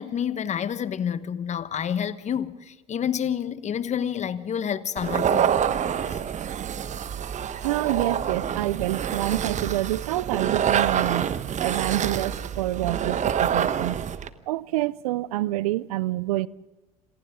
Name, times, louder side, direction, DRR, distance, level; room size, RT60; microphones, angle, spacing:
voice 1, 0.0-5.5 6.1-6.2, left 8 dB, 40° left, 1.3 m, -29 dB
sound 1, 5.0-14.3, right 8 dB, 40° right, 1.2 m, -26 dB
voice 2, 7.6-11.3 11.6-14.0 14.5-16.5, right 16 dB, 75° right, 0.6 m, -27 dB
27.5 x 27.5 x 3.8 m
hypercardioid pair, 70°, 19 cm